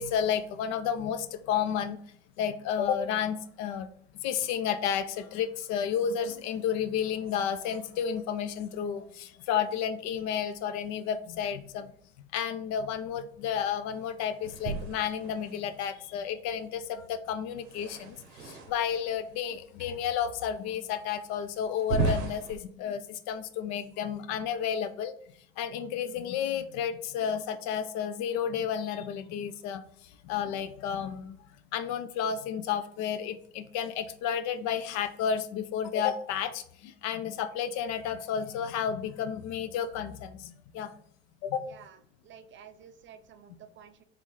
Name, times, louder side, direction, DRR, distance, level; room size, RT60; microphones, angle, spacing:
voice 1, 0.0-2.0 2.4-3.9 4.2-11.9 12.3-25.1 25.6-29.8 30.2-31.4 31.7-40.9 41.4-41.7, left 8 dB, 60° left, 11 dB, 0.4 m, -31 dB
sound 1, 14.4-15.8 17.6-19.0 19.8-19.9 20.5-20.6 21.7-22.6, right 4 dB, 80° right, 0.7 m, -34 dB
voice 2, 41.7-44.0, right 8 dB, 40° right, 9 dB, 0.5 m, -52 dB
3.2 x 2.9 x 3.7 m, 0.63 s
hypercardioid pair, 70°, 32 cm